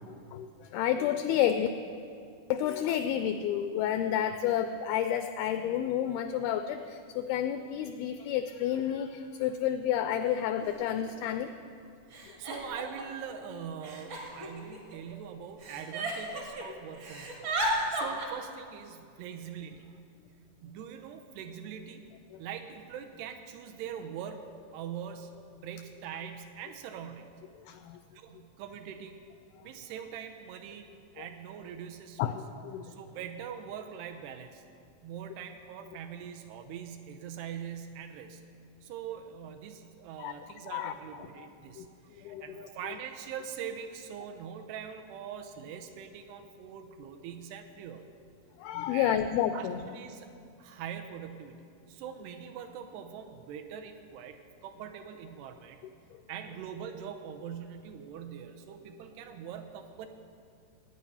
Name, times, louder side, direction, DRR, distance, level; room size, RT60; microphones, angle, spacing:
voice 1, 0.0-1.7 2.5-11.5 22.3-22.4 27.7-28.0 31.2-31.3 32.2-32.9 40.2-40.3 40.7-40.9 41.4-41.5 41.8-41.9 42.2-42.7 48.6-49.8, left 10 dB, 85° left, 9 dB, 2.2 m, -30 dB
Giggle, 9.5-9.6 10.6-10.7 10.9-11.5 12.1-13.2 13.8-15.1 15.6-16.6 16.9-18.3, right 1 dB, 50° right, 1.5 m, -34 dB
voice 2, 12.1-20.1 20.6-22.1 22.4-27.4 28.1-29.2 29.6-30.9 31.1-32.4 32.8-34.6 35.0-38.4 38.8-48.1 48.9-49.2 49.5-50.3 50.6-51.6 51.9-54.4 54.6-55.8 56.3-60.1, right 8 dB, 80° right, 5 dB, 2.7 m, -43 dB
18.0 x 9.3 x 5.6 m, 2.4 s
omnidirectional pair, 4.8 m